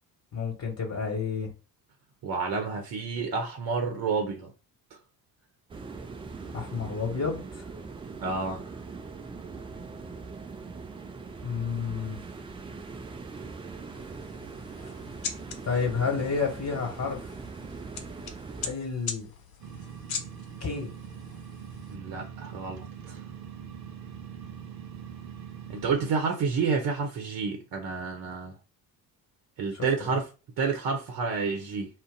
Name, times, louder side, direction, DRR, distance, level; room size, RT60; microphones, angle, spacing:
voice 1, 0.3-1.5 6.5-7.6 11.4-12.2 15.6-17.2 18.6-19.3 20.6-20.9 29.7-30.2, left 5 dB, 30° left, 1.4 m, -30 dB
voice 2, 2.2-4.5 8.2-8.7 21.9-23.2 25.7-28.5 29.6-30.3 30.6-31.9, right 5 dB, 45° right, 0.8 m, -29 dB
sound 1, 5.7-18.7, right 4 dB, 10° right, 0.3 m, -41 dB
sound 2, 13.9-22.0, left 6 dB, 45° left, 0.8 m, -42 dB
sound 3, 19.6-26.1, right 8 dB, 80° right, 0.7 m, -42 dB
2.4 x 2.1 x 3.9 m
figure-of-eight pair, 50°, 49 cm